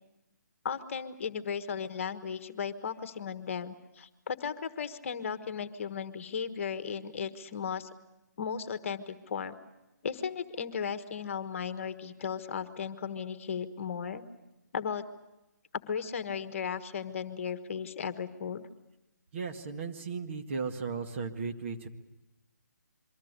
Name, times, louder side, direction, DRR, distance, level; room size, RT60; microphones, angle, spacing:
voice 1, 0.6-7.9 8.4-9.6 10.0-14.2 14.7-15.0 15.9-18.7, left 7 dB, 45° left, 11 dB, 1.3 m, -36 dB
voice 2, 19.3-21.9, right 5 dB, 40° right, 5 dB, 1.8 m, -36 dB
26.5 x 24.0 x 6.7 m, 0.95 s
figure-of-eight pair, 150°, 10 cm